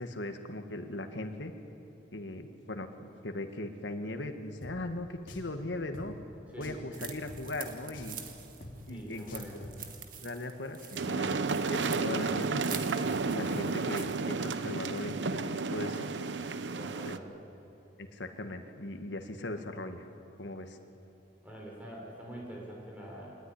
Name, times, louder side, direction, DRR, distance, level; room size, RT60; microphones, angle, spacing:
voice 1, 0.0-1.5 2.1-6.2 6.6-8.2 8.9-9.5 10.2-11.3 11.7-12.8 13.3-16.1 17.0-17.2 18.0-20.0 20.4-20.8, left 2 dB, 90° left, 6 dB, 1.6 m, -39 dB
Drum, 4.6-4.7 5.3-5.5 5.9-6.1 6.6-6.9 7.3-7.4 7.9-8.2 8.6-8.7 9.3-9.8, left 1 dB, 50° left, 3.2 m, -46 dB
voice 2, 6.5-7.0 8.9-9.6 16.7-17.3 21.4-23.4, right 1 dB, 10° right, -3 dB, 5.5 m, -45 dB
sound 1, 6.9-14.2, right 8 dB, 50° right, 1.9 m, -47 dB
sound 2, 11.0-17.2, right 4 dB, 85° right, 0.8 m, -32 dB
24.0 x 19.0 x 10.0 m, 3.0 s
head